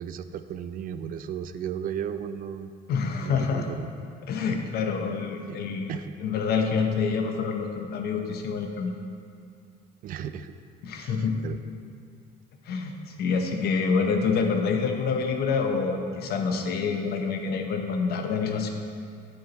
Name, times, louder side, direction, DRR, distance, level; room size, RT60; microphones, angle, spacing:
voice 1, 0.0-2.7 3.2-3.9 5.5-5.6 5.9-6.2 10.0-10.6 11.0-11.6, right 8 dB, 55° right, 11 dB, 0.4 m, -35 dB
voice 2, 2.9-3.7 4.3-5.9 6.2-9.0 10.8-11.4 12.7-12.9 13.2-18.7, left 5 dB, 70° left, 4 dB, 0.9 m, -27 dB
8.6 x 6.8 x 4.1 m, 2.3 s
cardioid pair, 110°, 17 cm